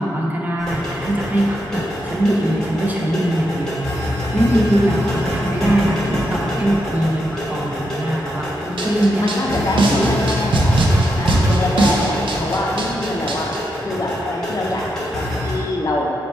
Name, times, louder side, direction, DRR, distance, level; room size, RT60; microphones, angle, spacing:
voice 1, 0.0-10.2, right 1 dB, 20° right, -3 dB, 0.5 m, -21 dB
sound 1, 0.6-15.5, left 1 dB, 5° left, 1.0 m, -25 dB
sound 2, 8.8-13.6, right 1 dB, 75° right, 0.4 m, -19 dB
voice 2, 9.2-10.8 11.2-13.5 13.9-16.1, left 2 dB, 45° left, -2 dB, 0.5 m, -24 dB
4.2 x 2.2 x 4.2 m, 2.8 s
wide cardioid pair, 95°, 9 cm